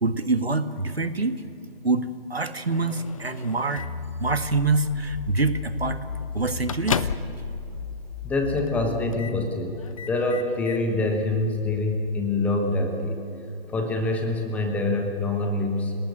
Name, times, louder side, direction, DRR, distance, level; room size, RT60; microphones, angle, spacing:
voice 1, 0.0-1.4 1.8-3.9 4.2-6.0 6.3-7.1, right 3 dB, 85° right, 10 dB, 1.6 m, -25 dB
Microwave oven, 2.7-4.1 5.0-5.3 5.6-5.7 6.1-7.5 7.8-7.9 8.6-8.8 9.1-9.4 9.8-10.8, left 6 dB, 35° left, 0.7 m, -33 dB
sound 1, 3.8-9.2, left 4 dB, 55° left, 3.0 m, -35 dB
voice 2, 8.2-9.8 10.1-13.2 13.7-15.9, left 2 dB, 5° left, 4 dB, 1.1 m, -25 dB
29.5 x 18.5 x 6.6 m, 2.7 s
figure-of-eight pair, 145°, 30 cm